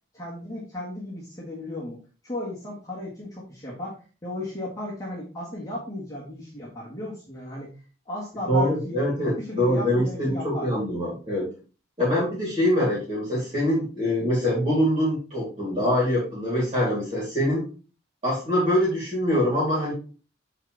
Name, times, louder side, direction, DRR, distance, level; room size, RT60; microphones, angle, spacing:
voice 1, 0.1-7.7 8.1-10.7, left 1 dB, 15° left, -6 dB, 1.7 m, -35 dB
voice 2, 8.5-11.5 12.0-17.6 18.2-19.9, equal, 30° right, -8 dB, 3.6 m, -24 dB
8.7 x 4.0 x 3.4 m, 0.36 s
head